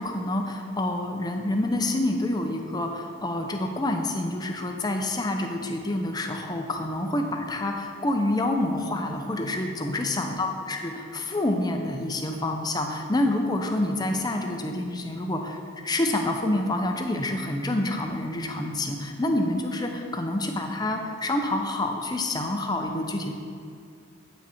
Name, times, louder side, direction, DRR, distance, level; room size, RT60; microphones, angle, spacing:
voice 1, 0.0-15.6 15.8-23.3, left 1 dB, 20° left, 4 dB, 0.5 m, -27 dB
8.1 x 6.0 x 4.3 m, 2.4 s
head